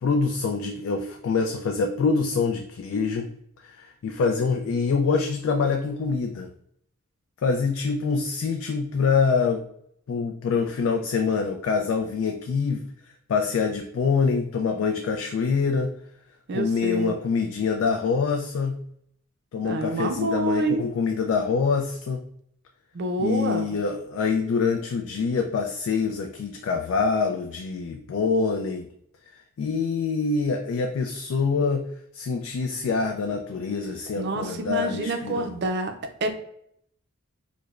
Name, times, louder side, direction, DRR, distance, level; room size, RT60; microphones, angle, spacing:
voice 1, 0.0-3.3 3.6-6.5 7.4-9.6 10.1-12.9 13.3-15.9 16.5-18.8 19.5-22.2 23.2-28.9 29.6-31.8 32.1-35.5, left 5 dB, 70° left, 4 dB, 0.3 m, -25 dB
voice 2, 16.5-17.1 19.6-20.8 22.9-23.7 34.2-35.9 36.2-36.3, right 2 dB, 55° right, 6 dB, 0.4 m, -27 dB
4.8 x 2.1 x 2.4 m, 0.71 s
head